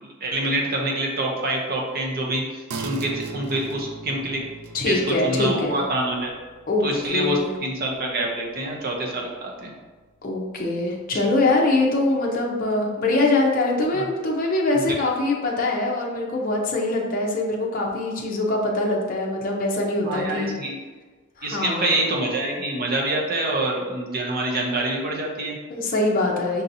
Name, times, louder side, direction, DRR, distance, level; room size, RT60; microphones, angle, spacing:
voice 1, 0.0-2.4 2.8-4.4 4.9-6.3 6.8-9.7 13.9-14.1 20.0-20.8 21.4-25.5, right 1 dB, 45° right, -1 dB, 0.7 m, -26 dB
sound 1, 2.7-9.7 10.1-10.2, right 4 dB, 80° right, 0.4 m, -40 dB
voice 2, 4.7-5.8 6.7-6.8 7.1-7.5 10.2-20.5 21.4-21.9 25.7-26.6, left 2 dB, 40° left, -1 dB, 0.6 m, -23 dB
5.3 x 2.8 x 2.6 m, 1.3 s
head